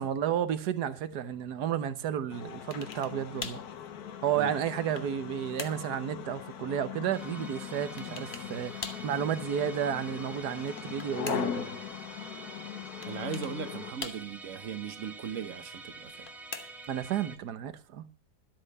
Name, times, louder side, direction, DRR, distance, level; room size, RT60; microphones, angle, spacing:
voice 1, 0.0-3.6 4.2-11.7 16.9-18.0, right 9 dB, 80° right, 1.5 m, -32 dB
sound 1, 2.3-13.9, left 9 dB, 75° left, 1.5 m, -40 dB
sound 2, 2.7-3.2 3.4-3.7 4.3-5.2 5.6-5.9 8.0-8.5 8.8-9.1 10.5-11.6 13.0-13.6 14.0-14.5 16.0-17.0, left 4 dB, 35° left, 1.1 m, -42 dB
Musical instrument, 7.1-17.4, right 2 dB, ahead, 0.9 m, -47 dB
voice 2, 13.0-16.3, right 7 dB, 55° right, 1.3 m, -38 dB
12.0 x 8.4 x 6.5 m
omnidirectional pair, 1.7 m